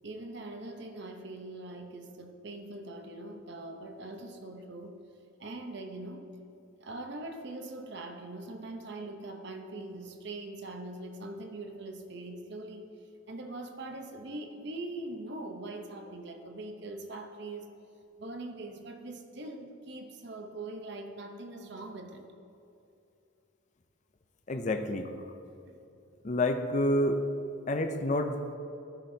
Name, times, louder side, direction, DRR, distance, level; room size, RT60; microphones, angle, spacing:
voice 1, 0.0-5.0 5.4-6.3 6.8-12.9 13.3-17.7 18.2-22.2 25.6-25.8, right 2 dB, 55° right, 5 dB, 0.8 m, -42 dB
voice 2, 24.5-25.1 26.2-27.2 27.7-28.6, left 1 dB, 35° left, 6 dB, 0.5 m, -28 dB
14.5 x 6.0 x 2.7 m, 2.7 s
head